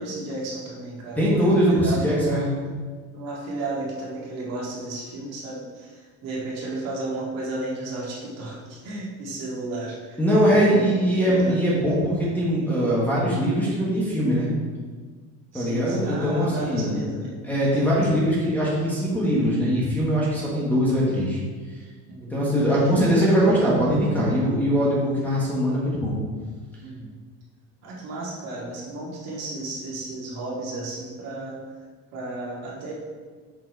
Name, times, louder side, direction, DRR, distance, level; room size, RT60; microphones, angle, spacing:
voice 1, 0.0-2.6 3.1-10.8 11.2-11.6 15.5-17.3 17.8-17.9 22.1-23.0 26.8-27.2 27.8-31.6 32.1-32.9, right 2 dB, 50° right, -4 dB, 2.0 m, -33 dB
voice 2, 1.2-2.5 10.2-14.5 15.5-16.9 17.4-21.4 22.3-26.2, equal, 5° left, -6 dB, 1.3 m, -21 dB
6.6 x 4.7 x 4.5 m, 1.5 s
cardioid pair, 165°, 32 cm